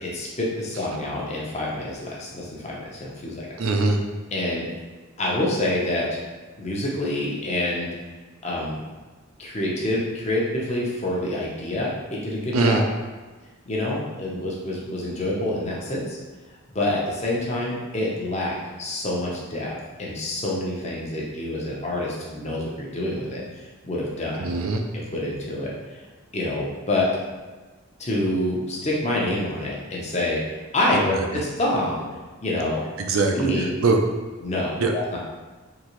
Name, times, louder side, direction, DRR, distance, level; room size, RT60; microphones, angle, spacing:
voice 1, 0.0-3.5 4.3-4.7 5.2-6.2 6.6-7.9 8.4-8.8 9.4-12.8 13.7-16.2 16.7-23.4 23.8-24.5 24.9-26.0 26.3-27.1 28.0-32.0 32.4-32.8 33.3-33.7 34.4-35.2, left 1 dB, 30° left, -4 dB, 0.7 m, -27 dB
voice 2, 3.6-4.0 12.5-12.8 24.4-24.8 33.0-33.3 33.8-34.0 34.8-34.9, right 3 dB, 85° right, 3 dB, 0.5 m, -21 dB
3.8 x 2.8 x 3.0 m, 1.3 s
head